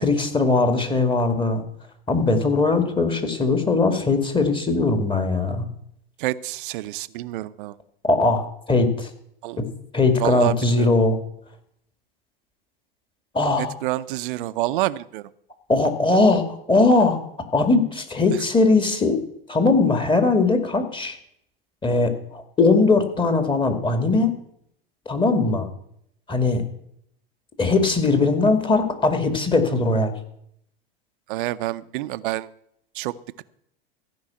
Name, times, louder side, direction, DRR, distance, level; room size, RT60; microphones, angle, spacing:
voice 1, 0.0-1.6 2.1-5.7 8.1-9.1 9.6-9.7 9.9-11.2 13.3-13.7 15.7-17.2 17.5-19.2 19.5-21.2 21.8-24.3 25.1-25.7 26.3-26.6 27.6-30.1, left 3 dB, 15° left, 7 dB, 2.2 m, -20 dB
voice 2, 6.2-7.8 9.4-9.6 10.2-10.9 13.6-15.3 18.3-18.4 31.3-32.5 32.9-33.4, right 16 dB, 60° right, 14 dB, 0.7 m, -28 dB
15.0 x 5.4 x 8.7 m, 0.72 s
hypercardioid pair, 95°, 30 cm